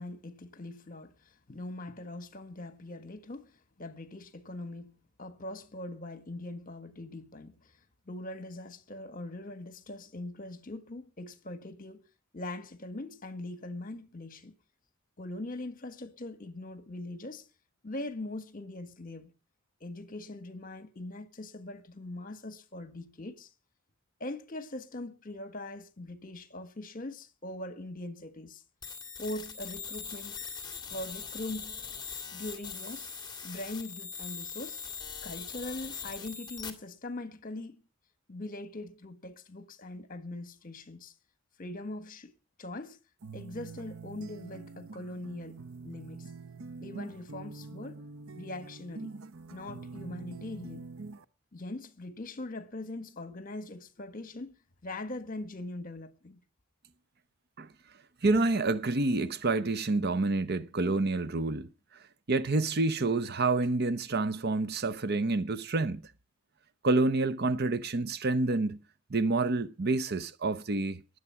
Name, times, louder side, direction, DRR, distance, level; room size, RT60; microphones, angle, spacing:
voice 1, 0.0-3.5 3.8-7.7 8.1-12.0 12.3-14.5 15.2-17.5 17.8-19.3 19.8-23.5 24.2-28.6 29.2-30.4 30.9-31.8 32.3-33.1 33.4-34.8 35.2-37.8 38.3-41.1 41.6-42.3 42.6-43.0 43.3-46.3 46.8-48.0 48.3-49.1 49.5-50.9 51.5-54.5 54.8-56.4, left 2 dB, 40° left, 1.6 m, -41 dB
sound 1, 28.8-36.7, left 6 dB, 20° left, 2.1 m, -41 dB
sound 2, 43.2-51.2, right 4 dB, 85° right, 0.9 m, -45 dB
voice 2, 58.2-61.7 62.3-66.0 66.8-68.8 69.1-71.0, right 3 dB, 50° right, 0.8 m, -28 dB
21.0 x 8.2 x 5.8 m
head